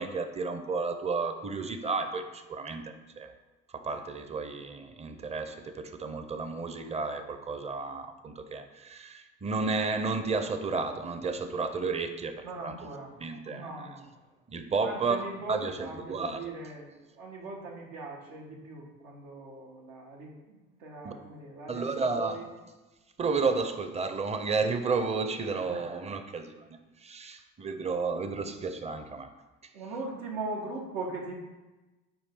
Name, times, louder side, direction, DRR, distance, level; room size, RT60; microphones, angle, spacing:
voice 1, 0.0-3.3 3.7-12.9 13.2-14.0 14.5-15.2 15.5-16.5 21.0-21.1 21.7-22.4 23.2-29.3, right 4 dB, 20° right, 8 dB, 0.6 m, -32 dB
voice 2, 12.4-13.1 13.4-14.1 14.8-16.9 17.2-22.5 25.7-25.8 29.7-31.4, right 3 dB, 85° right, -2 dB, 1.6 m, -40 dB
7.0 x 4.6 x 3.7 m, 1.1 s
cardioid pair, 105°, 29 cm